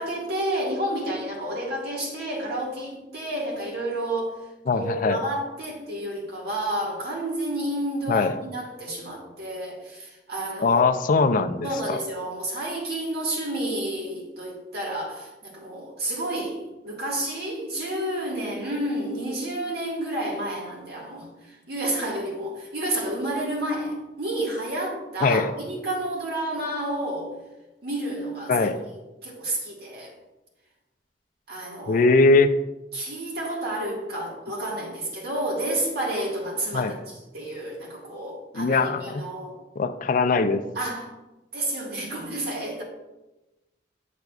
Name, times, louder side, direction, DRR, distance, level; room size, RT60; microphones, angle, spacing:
voice 1, 0.0-4.4 4.7-11.0 11.6-27.3 27.8-30.1 31.5-32.1 32.9-36.9 37.3-39.6 40.7-41.1 41.5-42.8, right 1 dB, 65° right, -3 dB, 1.7 m, -30 dB
voice 2, 4.7-5.2 8.1-8.4 10.6-12.0 25.2-25.5 28.5-28.8 31.9-32.6 36.7-37.0 38.5-39.2 39.8-40.6, left 3 dB, 50° left, 10 dB, 0.4 m, -21 dB
7.8 x 5.9 x 2.4 m, 1.0 s
head